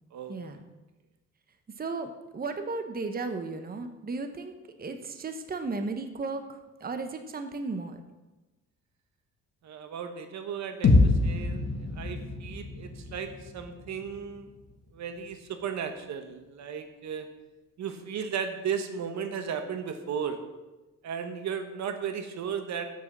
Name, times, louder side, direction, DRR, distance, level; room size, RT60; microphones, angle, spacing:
voice 1, 0.3-0.7 1.8-8.0, right 3 dB, 30° right, 7 dB, 1.0 m, -35 dB
voice 2, 9.6-11.7 11.9-14.5 14.9-17.3 17.8-20.5 21.0-22.9, right 7 dB, 65° right, 7 dB, 1.2 m, -35 dB
sound 1, 10.8-14.8, left 3 dB, 55° left, 1.6 m, -26 dB
7.7 x 7.1 x 7.3 m, 1.1 s
cardioid pair, 90°, 30 cm